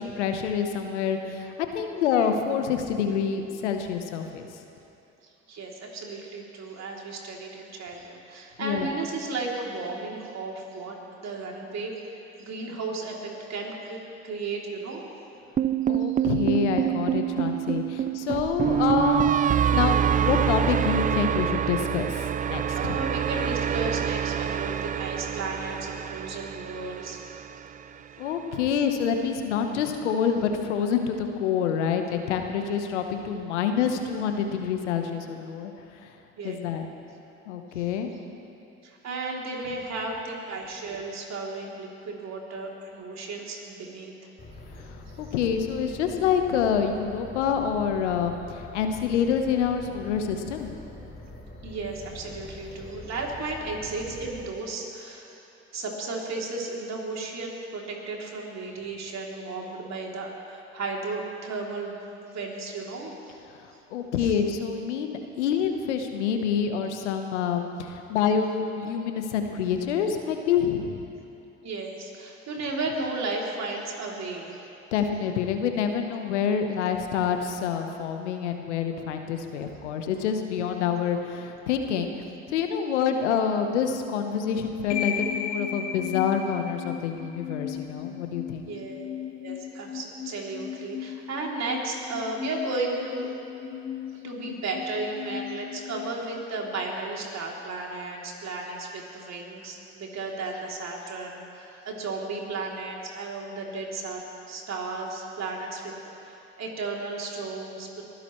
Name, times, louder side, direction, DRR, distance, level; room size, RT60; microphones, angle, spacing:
voice 1, 0.0-4.5 8.6-8.9 15.9-19.4 19.7-23.0 28.2-35.7 36.4-36.8 37.5-38.1 44.8-44.9 45.2-50.7 63.9-71.0 74.9-88.7, left 7 dB, 85° left, 5 dB, 1.1 m, -27 dB
voice 2, 5.5-14.0 14.2-15.1 16.0-16.3 22.7-27.5 36.4-36.6 37.8-37.9 38.8-44.1 51.6-55.4 55.7-63.4 64.2-64.4 71.6-74.6 88.6-89.1 89.4-93.3 94.1-104.2 104.5-105.9 106.2-108.0, right 3 dB, 50° right, -1 dB, 3.2 m, -34 dB
sound 1, 15.6-27.8, right 9 dB, 25° right, 0.4 m, -26 dB
sound 2, 44.4-54.4, left 1 dB, 30° left, 3.8 m, -44 dB
sound 3, 84.9-97.0, left 9 dB, 50° left, 1.6 m, -36 dB
23.5 x 15.5 x 3.2 m, 2.9 s
hypercardioid pair, 60°, 34 cm